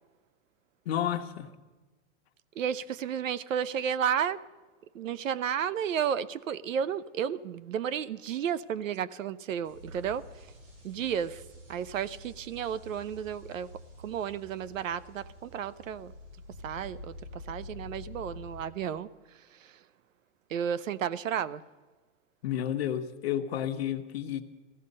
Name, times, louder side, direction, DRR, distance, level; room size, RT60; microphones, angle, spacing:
voice 1, 0.9-1.5 22.4-24.4, left 10 dB, 55° left, 1.2 m, -31 dB
voice 2, 2.6-4.4 4.9-10.3 10.8-11.4 11.7-13.7 14.0-16.1 16.6-19.1 19.5-19.8 20.5-21.6, right 8 dB, 85° right, 0.8 m, -32 dB
sound 1, 9.6-18.6, left 1 dB, 45° right, 5.3 m, -48 dB
16.0 x 14.5 x 5.4 m
hypercardioid pair, 160°, 38 cm